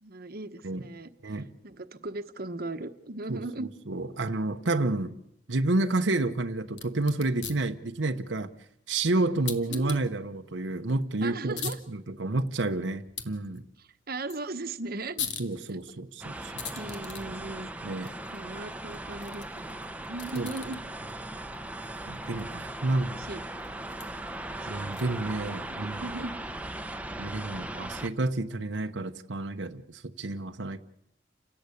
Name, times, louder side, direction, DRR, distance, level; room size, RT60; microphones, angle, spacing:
voice 1, 0.0-3.7 9.7-10.0 11.2-11.8 13.8-15.2 15.7-15.8 16.8-17.7 18.3-20.8 23.2-23.5 24.6-25.4 25.7-26.3, right 2 dB, 55° right, 1.2 m, -38 dB
voice 2, 3.3-5.1 5.5-8.5 8.9-11.6 11.9-13.6 15.4-16.5 17.8-18.1 20.4-20.5 22.1-23.2 24.7-26.0 27.2-30.8, right 2 dB, 80° right, 1.0 m, -30 dB
sound 1, 6.7-25.3, left 7 dB, 70° left, 2.5 m, -44 dB
sound 2, 16.2-28.1, right 1 dB, 10° right, 0.9 m, -38 dB
29.5 x 17.5 x 8.5 m
head